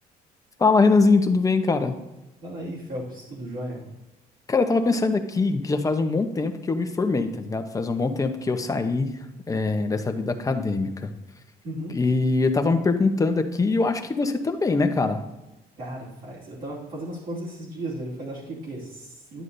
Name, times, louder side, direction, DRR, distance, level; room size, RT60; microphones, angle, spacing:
voice 1, 0.6-1.9 4.5-9.1 9.5-11.1 11.9-15.2, left 3 dB, 20° left, 6 dB, 0.8 m, -22 dB
voice 2, 2.4-3.9 11.6-12.0 15.8-19.4, right 1 dB, 55° right, -7 dB, 2.8 m, -35 dB
11.0 x 8.2 x 2.7 m, 1.0 s
cardioid pair, 110°, 17 cm